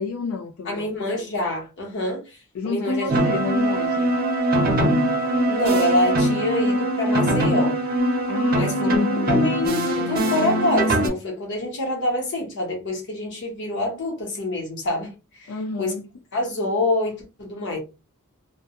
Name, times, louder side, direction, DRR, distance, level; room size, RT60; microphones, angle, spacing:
voice 1, 0.0-0.9 2.5-4.1 6.7-6.8 8.3-9.5 15.5-16.1, left 4 dB, 70° left, 0.4 m, -30 dB
voice 2, 0.6-2.4 2.6-3.1 5.5-7.8 8.5-8.9 9.2-15.5 15.8-15.9 16.3-17.8, left 1 dB, 55° left, 0.9 m, -26 dB
sound 1, 3.1-11.1, right 1 dB, 45° right, 0.7 m, -21 dB
2.2 x 2.1 x 2.8 m
head